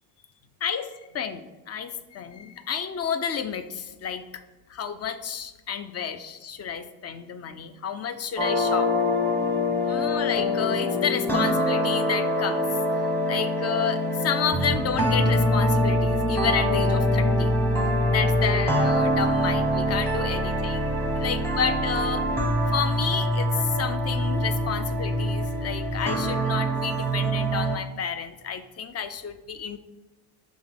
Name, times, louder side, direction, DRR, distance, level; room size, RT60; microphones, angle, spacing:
voice 1, 1.1-4.2 4.7-8.9 9.8-12.6 13.3-17.5 18.1-20.9 21.2-22.3 22.7-29.8, left 7 dB, 30° left, 10 dB, 0.6 m, -30 dB
sound 1, 8.4-27.8, equal, 5° left, 1.0 m, -24 dB
6.3 x 3.5 x 6.0 m, 1.1 s
cardioid pair, 120°, 48 cm